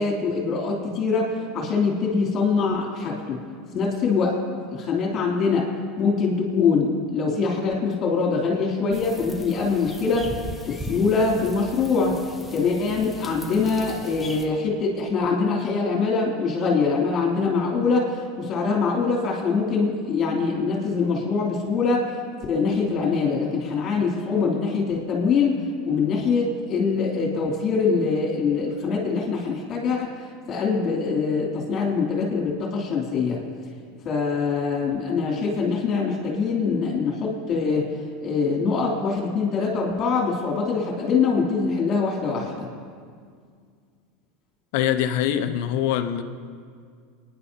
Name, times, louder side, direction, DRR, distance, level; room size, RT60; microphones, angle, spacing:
voice 1, 0.0-3.4 3.7-4.4 4.7-5.7 6.0-12.2 12.5-22.1 22.5-25.6 25.8-30.1 30.5-33.4 34.0-37.9 38.2-42.7, left 4 dB, 40° left, -1 dB, 3.0 m, -23 dB
sound 1, 8.9-14.5, left 1 dB, 5° left, 1.1 m, -39 dB
voice 2, 44.7-46.2, left 10 dB, 70° left, 8 dB, 0.8 m, -23 dB
28.0 x 10.5 x 2.9 m, 2.1 s
supercardioid pair, 110°, 0 cm